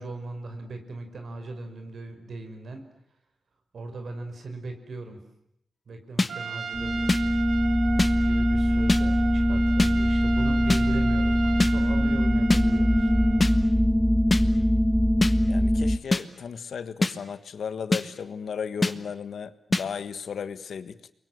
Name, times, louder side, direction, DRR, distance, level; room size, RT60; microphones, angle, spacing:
voice 1, 0.0-2.9 3.7-5.2 5.9-7.2 8.2-13.1, right 3 dB, 65° right, 6 dB, 5.3 m, -38 dB
sound 1, 6.2-6.3 7.1-7.2 8.0-8.1 8.9-9.0 9.8-9.9 10.7-10.8 11.6-11.7 12.5-12.6 13.4-13.5 14.3-14.4 15.2-15.3 16.1-16.2 17.0-17.1 17.9-18.0 18.8-18.9 19.7-19.8, left 2 dB, 25° left, 1.4 m, -23 dB
Trumpet, 6.3-13.6, right 6 dB, 85° right, 2.5 m, -36 dB
sound 2, 6.7-16.0, equal, ahead, 1.3 m, -22 dB
voice 2, 15.5-21.1, left 6 dB, 80° left, 13 dB, 1.5 m, -35 dB
29.0 x 23.5 x 7.9 m, 0.79 s
wide cardioid pair, 130°, 0 cm